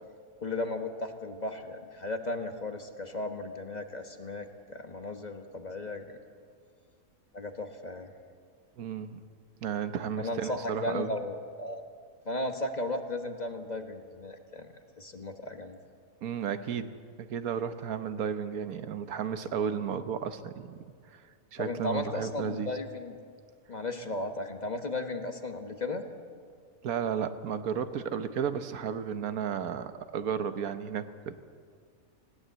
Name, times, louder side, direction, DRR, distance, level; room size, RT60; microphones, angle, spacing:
voice 1, 0.4-6.2 7.3-8.1 10.2-11.8 12.2-14.7 15.0-15.8 21.6-23.2 23.7-26.1, left 2 dB, 30° left, 5 dB, 1.3 m, -35 dB
voice 2, 8.8-9.3 9.6-11.1 16.2-20.8 21.1-21.2 21.5-22.7 26.8-31.4, right 7 dB, 90° right, 10 dB, 1.4 m, -33 dB
20.0 x 17.0 x 8.0 m, 2.1 s
omnidirectional pair, 1.5 m